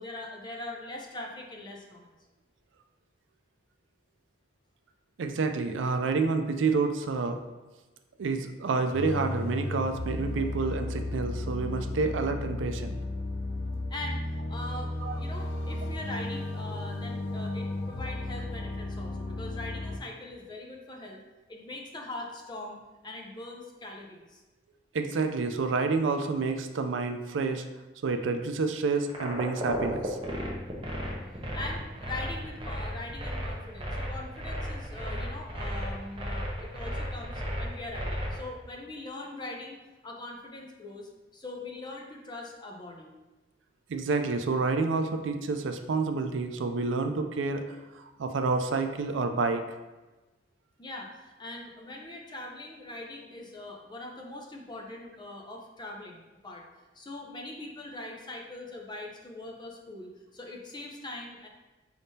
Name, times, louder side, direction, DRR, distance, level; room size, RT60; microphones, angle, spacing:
voice 1, 0.0-2.1 13.9-14.2 14.5-21.2 21.5-22.8 23.0-24.4 31.5-43.1 50.8-56.7 56.9-61.5, left 2 dB, 25° left, 0 dB, 0.6 m, -42 dB
voice 2, 5.2-7.4 8.2-13.0 15.0-15.1 24.9-27.6 28.0-30.2 43.9-49.6, right 4 dB, 75° right, 7 dB, 0.4 m, -29 dB
sound 1, 8.9-20.0, left 2 dB, 85° left, 0.5 m, -34 dB
sound 2, 29.1-38.4, equal, 30° right, 0.7 m, -34 dB
4.8 x 3.6 x 2.7 m, 1.2 s
head